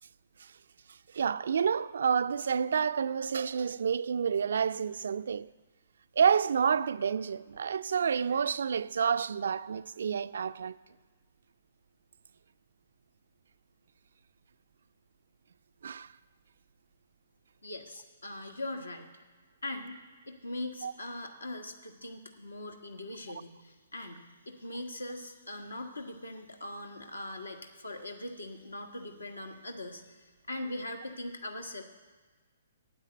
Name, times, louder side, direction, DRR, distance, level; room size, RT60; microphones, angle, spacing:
voice 1, 1.1-5.5 6.2-10.8 15.8-16.1 20.8-20.9, right 7 dB, 60° right, 0.3 m, -29 dB
voice 2, 17.6-19.1 19.6-20.0 20.3-31.8, left 1 dB, 75° left, 1.4 m, -41 dB
9.4 x 9.1 x 8.0 m
figure-of-eight pair, 125°, 0 cm